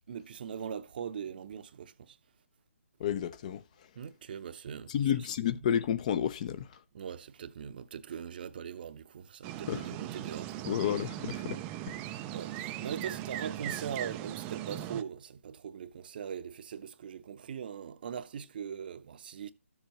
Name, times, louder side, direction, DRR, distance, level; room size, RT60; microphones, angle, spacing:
voice 1, 0.1-2.2 4.0-4.9 6.9-10.7 12.3-19.5, right 7 dB, 40° right, 0.7 m, -41 dB
voice 2, 3.0-3.9 4.9-6.8 9.7-9.9 10.7-11.6 11.9-12.1, left 9 dB, 30° left, 0.6 m, -31 dB
sound 1, 9.4-15.0, right 13 dB, 15° right, 0.4 m, -39 dB
13.5 x 7.1 x 3.0 m
hypercardioid pair, 155°, 8 cm